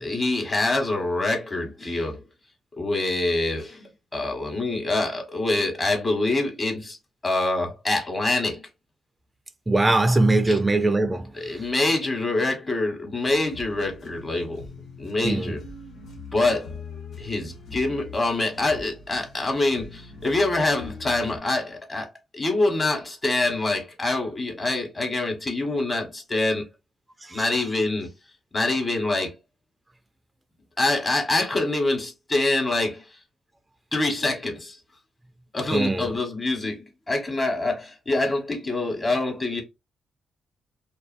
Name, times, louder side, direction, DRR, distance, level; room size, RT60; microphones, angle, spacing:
voice 1, 0.0-2.2 2.8-7.0 7.2-8.6 10.5-10.6 11.4-14.6 15.0-15.6 16.3-16.8 17.2-22.1 22.3-26.7 27.3-28.1 28.5-29.3 30.8-33.0 33.9-34.7 35.5-39.6, left 2 dB, 25° left, 1.1 m, -25 dB
voice 2, 9.7-11.7 15.2-15.6 27.2-27.7 35.7-36.1, right 2 dB, 20° right, 0.4 m, -22 dB
sound 1, 13.2-21.4, left 4 dB, 80° left, 1.2 m, -42 dB
2.4 x 2.3 x 2.5 m
cardioid pair, 85°, 0 cm